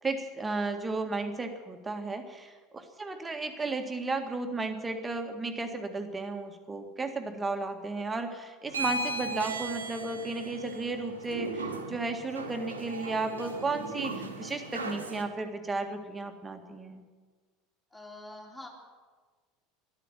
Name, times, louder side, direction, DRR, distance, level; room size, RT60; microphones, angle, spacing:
voice 1, 0.0-17.0, right 3 dB, 15° right, 5 dB, 1.9 m, -34 dB
sound 1, 8.7-15.2, right 3 dB, 80° right, 1.4 m, -37 dB
voice 2, 17.9-18.7, left 2 dB, 10° left, 0 dB, 3.5 m, -45 dB
12.5 x 12.0 x 9.3 m, 1.4 s
figure-of-eight pair, 70°, 0 cm